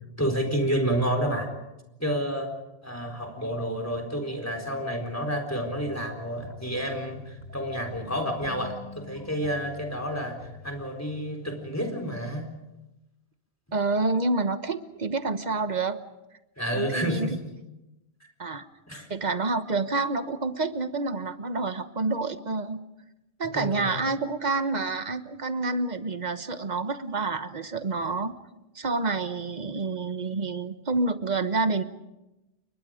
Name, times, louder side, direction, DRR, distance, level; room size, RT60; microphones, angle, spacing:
voice 1, 0.2-1.5 2.0-2.5 2.8-12.5 16.6-17.3 18.9-19.1 23.5-24.0, equal, 15° left, 5 dB, 4.3 m, -29 dB
sound 1, 5.7-10.9, left 5 dB, 40° left, 1.7 m, -46 dB
voice 2, 13.7-16.0 16.7-17.3 18.4-18.6 19.1-22.8 23.4-28.3 28.7-31.8, right 3 dB, 45° right, 10 dB, 1.3 m, -28 dB
29.5 x 23.0 x 5.1 m, 0.96 s
omnidirectional pair, 1.1 m